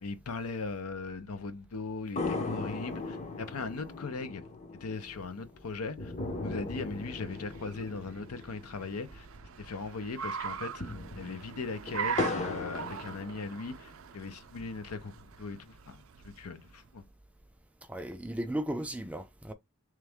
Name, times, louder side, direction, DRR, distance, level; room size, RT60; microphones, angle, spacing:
voice 1, 0.0-4.4 4.8-6.1 6.4-9.3 9.6-15.1 15.4-17.0, left 4 dB, 85° left, 0.7 m, -39 dB
sound 1, 2.2-9.8 10.0-10.1 10.6-13.9 14.4-15.4, left 2 dB, 30° left, 0.6 m, -38 dB
Car, 6.6-16.9, right 7 dB, 70° right, 0.4 m, -42 dB
voice 2, 17.9-19.5, right 1 dB, 5° right, 0.4 m, -35 dB
3.5 x 3.2 x 3.5 m
head